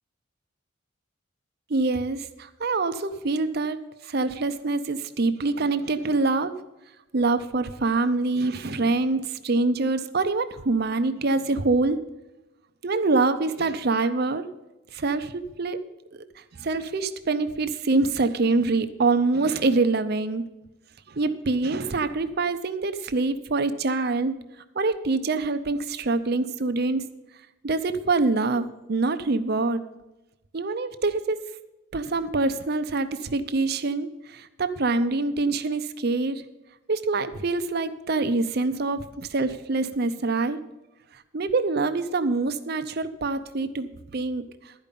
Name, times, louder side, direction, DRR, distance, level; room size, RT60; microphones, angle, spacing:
voice 1, 1.7-3.8 4.0-6.5 7.1-12.0 12.8-14.5 14.9-15.8 16.1-16.2 16.6-20.4 21.1-24.3 24.8-27.0 27.6-29.8 30.5-31.4 31.9-36.4 36.9-40.6 41.3-44.7, right 3 dB, 50° right, 10 dB, 0.6 m, -25 dB
12.0 x 5.3 x 8.4 m, 1.0 s
head